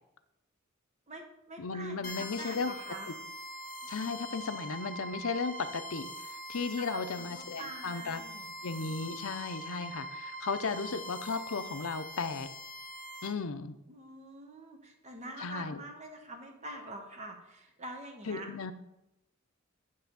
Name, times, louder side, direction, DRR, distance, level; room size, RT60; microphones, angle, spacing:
voice 1, 1.1-3.1 3.8-3.9 6.8-8.5 13.9-18.5, right 1 dB, 35° right, 3 dB, 1.2 m, -45 dB
voice 2, 1.6-2.7 3.9-6.1 6.5-8.2 8.6-12.5 13.2-13.8 15.4-15.8 18.2-18.7, left 4 dB, 85° left, 10 dB, 0.7 m, -35 dB
sound 1, 2.0-13.3, equal, 40° left, 1.0 m, -43 dB
9.6 x 3.4 x 6.9 m, 0.87 s
head